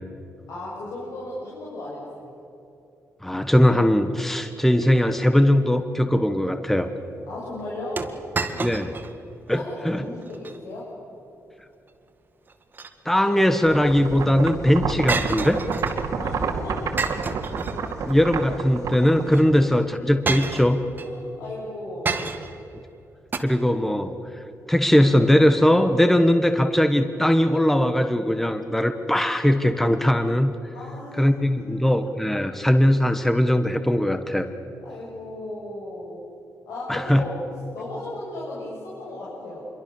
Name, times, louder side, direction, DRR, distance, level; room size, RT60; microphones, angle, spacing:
voice 1, 0.5-2.3 7.2-8.0 9.5-10.9 16.1-16.9 19.4-19.5 21.0-22.2 30.7-32.4 34.8-36.3 36.7-37.3 37.7-39.6, left 2 dB, 90° left, -7 dB, 7.4 m, -36 dB
voice 2, 3.2-6.9 8.6-8.9 9.5-10.0 13.0-15.6 18.0-20.8 23.4-24.1 24.7-30.5 31.2-34.5 36.9-37.2, equal, 5° left, 8 dB, 1.3 m, -20 dB
sound 1, 8.0-9.1 9.5-9.6 10.2-10.6 12.5-13.4 15.1-16.1 17.0-18.1 19.3-19.4 20.3-21.1 22.1-22.7 23.3-23.4, right 4 dB, 35° right, 1.8 m, -29 dB
sound 2, 13.6-19.8, right 5 dB, 75° right, 2.5 m, -29 dB
27.0 x 23.0 x 7.1 m, 2.9 s
cardioid pair, 110°, 6 cm